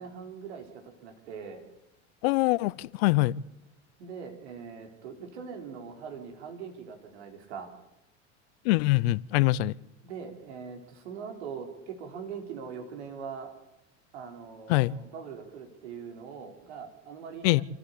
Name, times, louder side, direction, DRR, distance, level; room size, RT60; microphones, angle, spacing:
voice 1, 0.0-1.6 4.0-7.7 10.0-13.5 14.1-17.6, right 6 dB, 75° right, 4.2 m, -42 dB
voice 2, 2.2-3.3 8.6-9.7 14.7-14.9 17.4-17.6, left 19 dB, 65° left, 0.8 m, -24 dB
27.5 x 15.0 x 8.5 m
hypercardioid pair, 80°, 34 cm